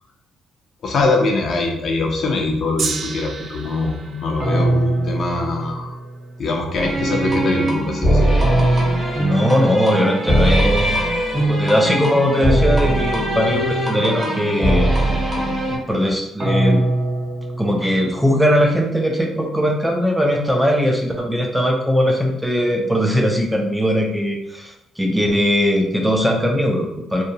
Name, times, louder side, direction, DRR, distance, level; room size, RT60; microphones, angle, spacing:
voice 1, 0.8-6.0 6.4-8.3, left 3 dB, 60° left, 1 dB, 0.6 m, -22 dB
Gong, 2.8-9.1 9.9-10.0, right 5 dB, 60° right, 0.3 m, -34 dB
sound 1, 4.4-6.4 8.4-10.2 12.4-14.2 16.4-18.6, right 1 dB, 45° right, 0.8 m, -23 dB
sound 2, 6.7-15.8, right 1 dB, 25° right, 1.1 m, -20 dB
voice 2, 9.2-11.0 11.5-14.9 15.9-16.8 17.6-27.2, equal, 5° right, 0 dB, 0.5 m, -19 dB
2.7 x 2.1 x 2.7 m, 0.82 s
cardioid pair, 90°, 0 cm